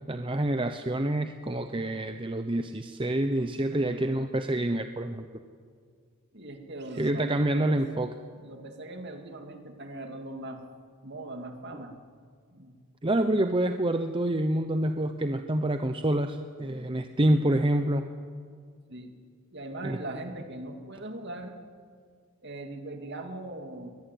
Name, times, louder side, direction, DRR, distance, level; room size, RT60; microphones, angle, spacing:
voice 1, 0.1-5.3 7.0-8.1 13.0-18.0 19.8-20.0, right 1 dB, 25° right, 7 dB, 0.8 m, -27 dB
voice 2, 6.3-8.1 8.4-10.6 11.0-11.9 12.5-12.8 18.9-19.1 19.5-21.6 22.4-23.9, right 1 dB, 50° right, 4 dB, 2.5 m, -40 dB
22.5 x 20.5 x 9.3 m, 2.1 s
head